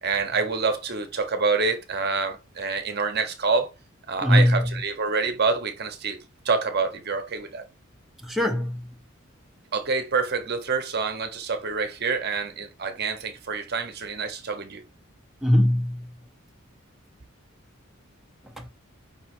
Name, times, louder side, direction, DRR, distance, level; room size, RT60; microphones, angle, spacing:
voice 1, 0.0-3.7 4.1-6.2 6.4-7.6 9.7-14.8, right 4 dB, 50° right, 0.8 m, -27 dB
voice 2, 4.2-4.7 8.2-8.9 15.4-16.1 18.6-18.7, left 1 dB, ahead, 0.8 m, -21 dB
5.5 x 3.1 x 3.0 m
head